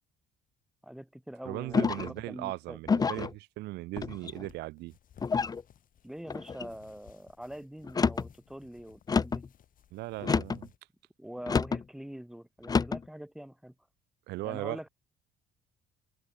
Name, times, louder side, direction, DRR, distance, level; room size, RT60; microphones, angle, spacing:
voice 1, 0.8-2.8 6.0-9.4 11.2-13.7 14.4-14.9, equal, 5° right, 2.9 m, -44 dB
voice 2, 1.4-4.9 9.9-10.7 14.3-14.9, right 19 dB, 85° right, 1.1 m, -38 dB
sound 1, 1.7-2.2 2.9-3.3 4.0-4.5 5.2-5.6 6.3-6.7 7.8-8.3 9.1-9.5 10.2-10.7 11.5-11.8 12.6-13.0, left 5 dB, 20° left, 0.6 m, -28 dB
sound 2, 4.2-10.8, left 10 dB, 55° left, 4.1 m, -61 dB
open air
cardioid pair, 110°, 17 cm